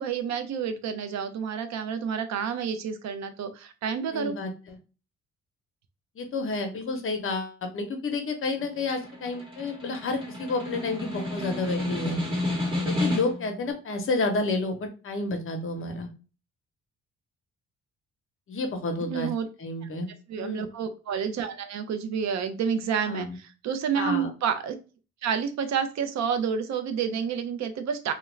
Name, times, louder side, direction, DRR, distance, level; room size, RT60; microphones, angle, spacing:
voice 1, 0.0-4.4 19.1-19.5 20.3-24.8 25.2-28.1, right 7 dB, 65° right, 8 dB, 0.6 m, -29 dB
voice 2, 4.1-4.8 6.2-12.2 12.8-16.1 18.5-19.3 19.6-20.1 20.4-20.6 23.1-23.4 23.9-24.3, left 3 dB, 45° left, 5 dB, 0.7 m, -30 dB
Snare drum, 8.6-13.5, left 1 dB, 15° right, 1.1 m, -31 dB
2.4 x 2.1 x 3.0 m, 0.34 s
cardioid pair, 90°, 30 cm